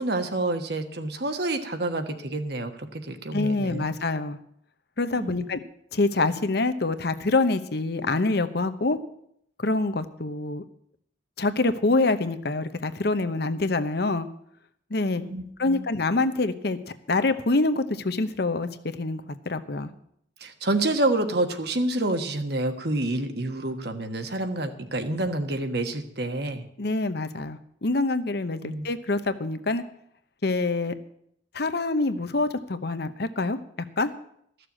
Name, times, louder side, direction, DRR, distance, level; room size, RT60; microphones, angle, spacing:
voice 1, 0.0-3.9 5.1-5.5 15.2-15.8 20.4-26.7 28.6-28.9, right 2 dB, 60° right, 7 dB, 1.4 m, -28 dB
voice 2, 3.3-4.4 5.0-5.6 5.9-9.0 9.6-10.6 11.4-14.3 14.9-15.3 15.6-16.8 17.1-18.7 18.9-19.9 26.8-29.8 30.4-30.9 31.5-33.6 34.0-34.1, left 2 dB, 60° left, 11 dB, 0.9 m, -25 dB
14.0 x 6.8 x 8.8 m, 0.69 s
head